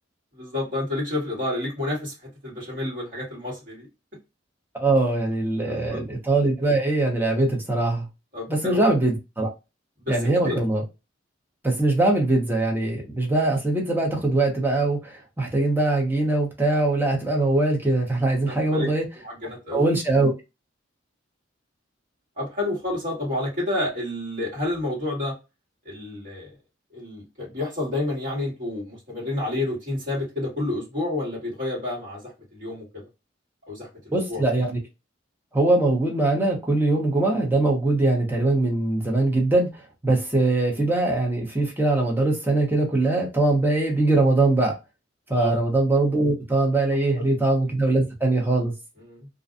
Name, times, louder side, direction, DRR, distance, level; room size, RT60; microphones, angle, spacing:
voice 1, 0.3-3.9 5.7-6.0 8.3-8.8 10.0-10.6 18.5-18.9 19.2-19.9 22.4-25.3 25.8-26.5 26.9-33.0 33.7-34.4 45.3-45.5 47.1-47.2 49.0-49.3, left 2 dB, 45° right, 1.5 m, -30 dB
voice 2, 4.7-8.1 8.5-9.5 10.1-10.8 11.6-19.0 19.7-20.3 34.1-34.8 35.5-44.7 45.3-48.7, right 2 dB, 10° right, 0.7 m, -22 dB
2.5 x 2.2 x 2.5 m
head